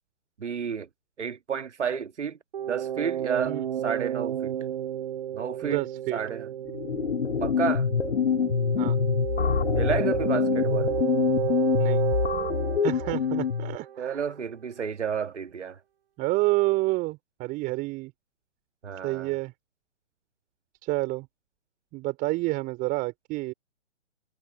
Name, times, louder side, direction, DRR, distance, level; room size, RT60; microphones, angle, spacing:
voice 1, 0.4-0.9 1.2-2.4 2.7-4.6 5.3-5.9 6.1-6.5 7.4-7.9 9.8-10.9 14.0-15.8 18.8-19.4, right 7 dB, 70° right, 1.8 m, -31 dB
sound 1, 2.5-14.1, right 10 dB, 50° right, 1.0 m, -31 dB
voice 2, 5.6-6.2 8.8-9.0 11.8-12.0 12.8-14.2 16.2-18.1 19.0-19.5 20.8-21.3 21.9-23.5, right 21 dB, 25° right, 5.2 m, -29 dB
sound 2, 6.7-13.8, left 7 dB, 65° left, 3.1 m, -25 dB
figure-of-eight pair, 140°, 37 cm